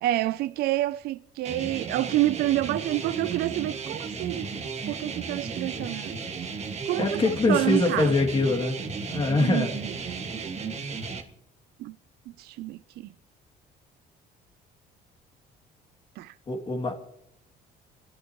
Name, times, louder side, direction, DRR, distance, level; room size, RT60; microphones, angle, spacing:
voice 1, 0.0-4.6 4.9-6.2 6.9-8.1 9.4-9.9 11.8-12.0 12.4-13.1 16.2-16.3, right 15 dB, 70° right, 0.4 m, -28 dB
sound 1, 1.5-11.2, right 5 dB, 40° right, 1.8 m, -34 dB
voice 2, 7.0-8.8 9.1-9.8 16.5-16.9, left 3 dB, 30° left, 2.4 m, -24 dB
29.5 x 11.0 x 3.0 m
cardioid pair, 110°, 17 cm